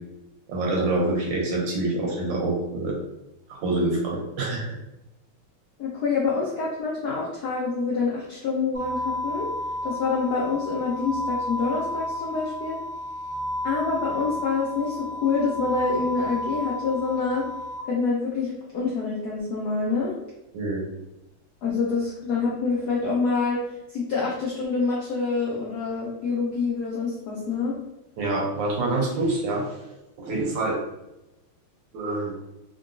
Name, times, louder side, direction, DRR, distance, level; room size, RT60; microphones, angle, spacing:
voice 1, 0.5-3.0 3.5-4.8 20.5-20.8 28.2-29.7 30.2-30.8 31.9-32.3, right 2 dB, 70° right, -2 dB, 1.2 m, -26 dB
voice 2, 5.8-9.5 9.8-12.8 13.6-17.4 17.9-20.1 21.6-23.6 23.9-27.7, left 4 dB, 75° left, -5 dB, 0.9 m, -26 dB
sound 1, 8.7-17.8, left 1 dB, 10° left, 0.7 m, -32 dB
3.7 x 2.2 x 2.5 m, 0.94 s
omnidirectional pair, 2.4 m